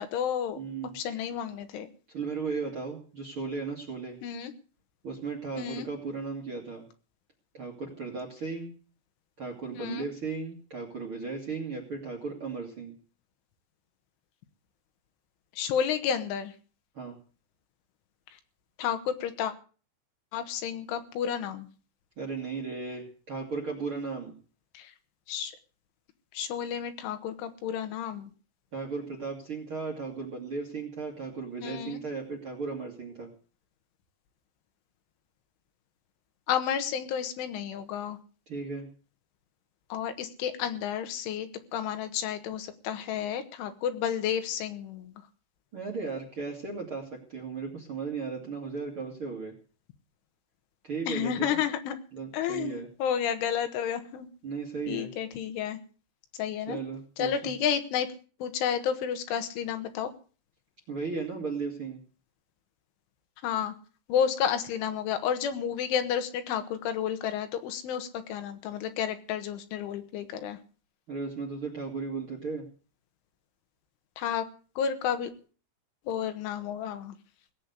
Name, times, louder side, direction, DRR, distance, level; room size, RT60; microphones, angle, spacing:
voice 1, 0.0-0.6 0.9-1.9 4.2-4.5 5.6-5.9 9.8-10.1 15.6-16.5 18.8-19.5 20.3-21.7 24.8-24.9 25.3-25.5 26.3-28.3 31.6-32.0 36.5-38.2 39.9-45.1 51.1-52.0 52.3-54.3 54.9-55.8 56.4-56.8 57.2-58.1 58.4-60.1 63.4-63.7 64.1-70.6 74.2-74.5 74.8-75.3 76.1-77.2, left 8 dB, 70° left, 8 dB, 3.6 m, -31 dB
voice 2, 0.6-1.2 2.1-4.2 5.0-6.8 7.5-8.7 9.4-12.9 16.9-17.2 22.2-24.4 28.7-33.3 38.5-38.9 45.7-49.5 50.8-51.6 52.1-52.9 54.4-55.1 56.7-57.5 60.9-62.0 71.1-72.7, right 4 dB, 45° right, 1 dB, 1.8 m, -36 dB
18.0 x 7.7 x 8.1 m, 0.40 s
omnidirectional pair, 6.0 m